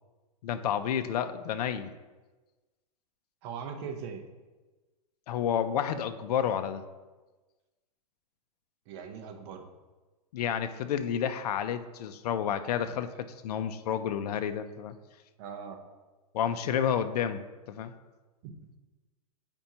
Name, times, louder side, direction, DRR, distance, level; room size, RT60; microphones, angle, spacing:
voice 1, 0.4-1.9 5.3-6.8 10.3-13.1 13.4-14.9 16.3-17.9, left 9 dB, 75° left, 10 dB, 0.5 m, -30 dB
voice 2, 3.4-4.2 8.9-9.6 15.4-15.8 18.4-18.5, right 6 dB, 40° right, 3 dB, 0.9 m, -40 dB
9.0 x 4.4 x 2.8 m, 1.2 s
supercardioid pair, 150°, 20 cm